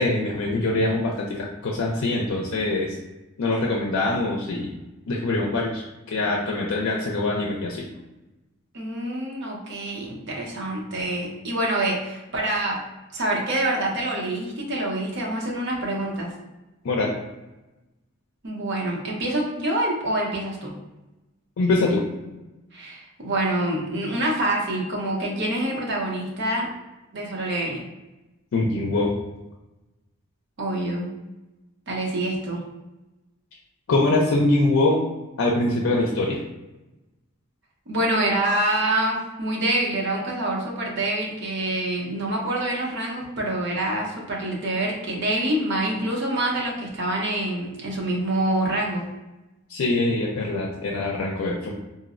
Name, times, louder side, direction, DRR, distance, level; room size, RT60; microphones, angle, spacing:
voice 1, 0.0-3.0 3.4-4.7 5.1-7.8 16.8-17.2 21.6-22.1 28.5-29.1 33.9-35.0 35.4-36.4 49.7-51.7, left 2 dB, 90° left, -2 dB, 0.4 m, -23 dB
voice 2, 8.7-12.8 13.1-16.3 18.4-20.7 22.7-26.7 27.1-27.8 30.6-31.1 31.9-32.6 37.9-49.0, right 1 dB, 60° right, -2 dB, 0.7 m, -26 dB
3.9 x 2.0 x 2.4 m, 1.0 s
head